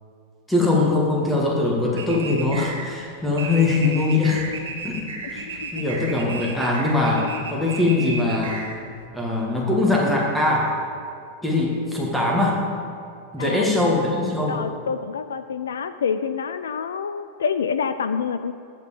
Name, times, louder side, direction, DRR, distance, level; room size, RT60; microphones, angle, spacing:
voice 1, 0.5-4.4 4.8-8.7 9.1-10.8 11.4-12.6 13.3-14.6, left 2 dB, 5° left, -3 dB, 1.8 m, -22 dB
sound 1, 2.0-9.1, right 4 dB, 65° right, 1.3 m, -34 dB
voice 2, 5.4-5.7 6.1-6.4 13.4-13.7 14.5-18.5, left 6 dB, 65° left, 11 dB, 0.3 m, -27 dB
13.5 x 4.6 x 7.2 m, 2.4 s
figure-of-eight pair, 90°, 0 cm